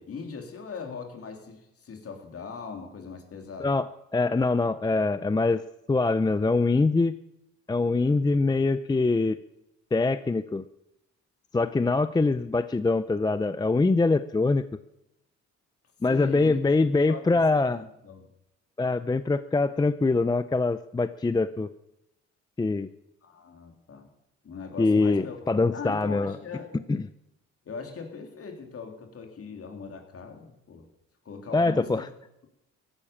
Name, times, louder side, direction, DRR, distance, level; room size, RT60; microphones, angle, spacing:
voice 1, 0.0-3.7 16.1-16.6 17.1-18.3 23.2-24.1 24.4-25.4 25.7-26.7 27.7-30.9 31.3-32.1, left 5 dB, 50° left, 4 dB, 3.5 m, -40 dB
voice 2, 3.6-7.2 7.7-9.4 9.9-10.6 11.5-14.6 16.0-17.8 18.8-21.7 22.6-22.9 24.8-26.4 26.9-27.1 31.5-32.1, left 3 dB, 15° left, 14 dB, 0.5 m, -24 dB
16.0 x 12.0 x 7.2 m, 0.88 s
cardioid pair, 90°, 30 cm